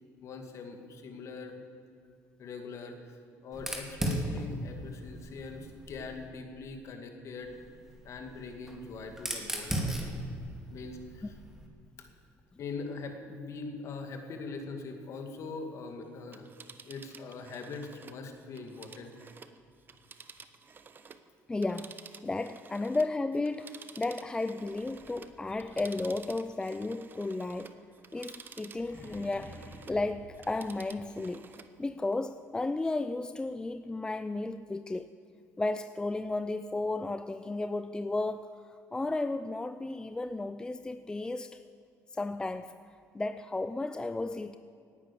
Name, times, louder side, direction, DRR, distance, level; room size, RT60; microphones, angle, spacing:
voice 1, 0.2-1.5 2.4-7.5 8.0-10.0 10.7-11.3 12.0-12.1 12.6-16.5 16.9-19.3, left 4 dB, 55° left, 5 dB, 2.3 m, -42 dB
Fire, 3.5-6.3 7.4-11.7, right 1 dB, 5° right, 2.4 m, -37 dB
Telephone, 16.2-21.3 21.6-30.0 30.3-31.8 32.1-32.2, right 5 dB, 35° right, 0.9 m, -52 dB
voice 2, 21.5-22.0 22.2-27.7 28.1-29.6 29.9-31.5 31.8-35.1 35.6-41.6 42.1-44.6, left 2 dB, 15° left, 11 dB, 0.5 m, -34 dB
sound 1, 24.6-31.4, equal, 30° left, 2.4 m, -54 dB
18.5 x 9.6 x 7.0 m, 2.5 s
cardioid pair, 105°, 6 cm